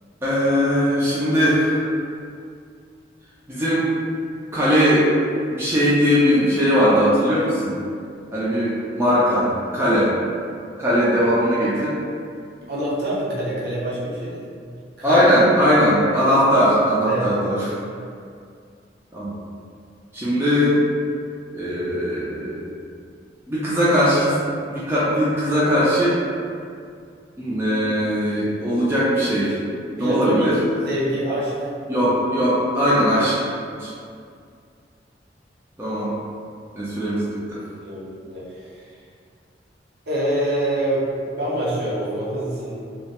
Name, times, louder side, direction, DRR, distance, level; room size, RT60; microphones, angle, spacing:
voice 1, 0.2-1.9 3.5-3.9 4.5-5.1 5.5-7.7 8.3-10.1 10.8-11.9 15.0-17.7 19.1-19.3 20.1-20.8 21.5-22.6 23.5-24.3 24.7-26.2 27.4-29.6 29.9-30.5 31.9-33.4 33.8-33.9 35.8-36.1 36.7-37.6, equal, 15° right, -10 dB, 0.3 m, -19 dB
voice 2, 12.7-14.5 15.0-15.2 17.1-17.3 30.0-30.5 30.8-31.7 37.8-38.5 40.1-42.7, right 1 dB, 60° right, -7 dB, 0.6 m, -25 dB
2.3 x 2.1 x 2.8 m, 2.3 s
head